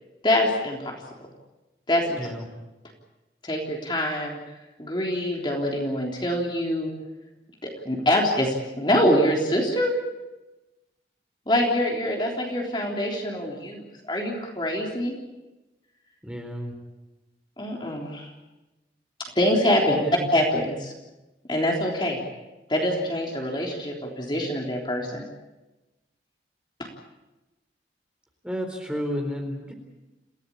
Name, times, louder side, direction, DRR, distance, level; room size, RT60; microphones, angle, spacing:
voice 1, 0.2-1.0 1.9-2.2 3.4-4.4 4.8-6.9 7.6-10.0 11.5-15.2 17.6-18.3 19.2-20.0 20.3-20.9 21.5-22.2 22.7-25.3 26.8-26.9, left 1 dB, 25° left, 0 dB, 3.5 m, -25 dB
voice 2, 16.2-16.7 19.9-20.3 28.4-29.7, equal, 5° right, 2 dB, 4.0 m, -31 dB
28.0 x 16.5 x 8.6 m, 1.1 s
head